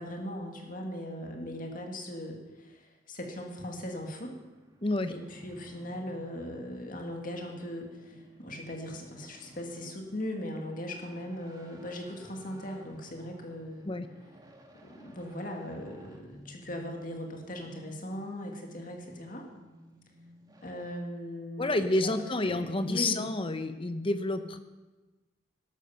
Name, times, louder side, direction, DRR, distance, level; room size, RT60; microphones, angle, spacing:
voice 1, 0.0-4.4 5.1-13.9 14.8-19.5 20.6-22.1 22.4-23.3, left 1 dB, 45° left, 2 dB, 2.1 m, -39 dB
sound 1, 3.6-21.0, right 1 dB, 20° right, 1.8 m, -55 dB
voice 2, 4.8-5.1 13.8-14.1 21.6-24.6, left 2 dB, 30° left, 9 dB, 0.8 m, -29 dB
13.0 x 13.0 x 5.9 m, 1.2 s
head